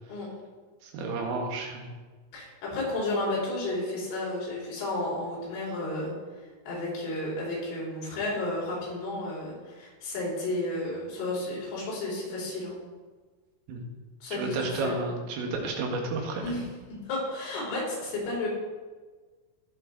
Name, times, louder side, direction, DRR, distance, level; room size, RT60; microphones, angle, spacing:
voice 1, 0.8-1.9 13.7-13.8 14.4-16.5, right 3 dB, 80° right, 1 dB, 4.3 m, -31 dB
voice 2, 2.3-6.1 6.7-12.8 14.2-15.0 16.4-16.7 17.1-18.5, left 2 dB, 70° left, -6 dB, 7.0 m, -32 dB
19.0 x 7.2 x 4.0 m, 1.4 s
omnidirectional pair, 5.8 m